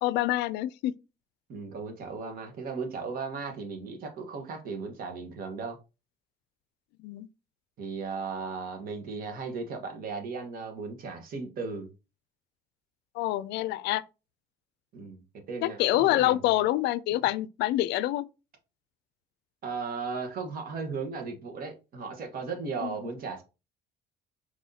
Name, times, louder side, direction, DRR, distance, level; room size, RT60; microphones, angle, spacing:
voice 1, 0.0-1.0 7.0-7.3 13.1-14.0 15.6-18.3 22.8-23.0, left 15 dB, 85° left, 0.4 m, -26 dB
voice 2, 1.5-5.8 7.8-11.9 14.9-15.2 15.5-16.6 19.6-23.4, right 4 dB, 60° right, 1.4 m, -36 dB
4.7 x 3.9 x 2.8 m
cardioid pair, 110°, 17 cm